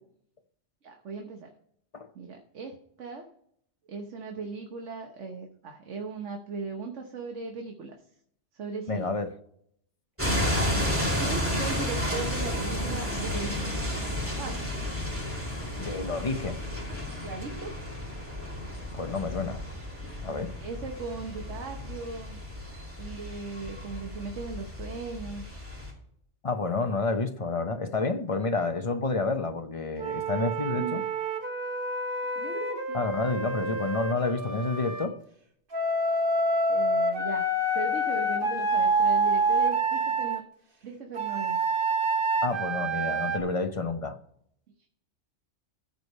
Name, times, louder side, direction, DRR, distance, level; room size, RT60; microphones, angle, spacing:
voice 1, 0.8-1.5 2.1-3.3 3.9-8.0 8.5-9.1 11.1-13.8 14.1-14.7 17.2-17.8 20.6-22.4 23.0-25.4 30.7-31.1 32.4-33.0 36.7-40.4 40.8-41.6 44.8-44.9, right 4 dB, 85° right, 1.4 m, -38 dB
voice 2, 8.9-9.3 15.8-16.6 18.9-19.6 20.2-20.6 26.4-31.0 32.9-35.1 42.4-44.2, left 3 dB, 35° left, 0.6 m, -29 dB
sound 1, 10.2-25.9, left 1 dB, 10° right, 2.7 m, -32 dB
Wind instrument woodwind instrument, 30.0-35.1 35.7-40.4 41.2-43.4, right 2 dB, 50° right, 1.4 m, -27 dB
14.5 x 4.9 x 5.4 m
omnidirectional pair, 1.2 m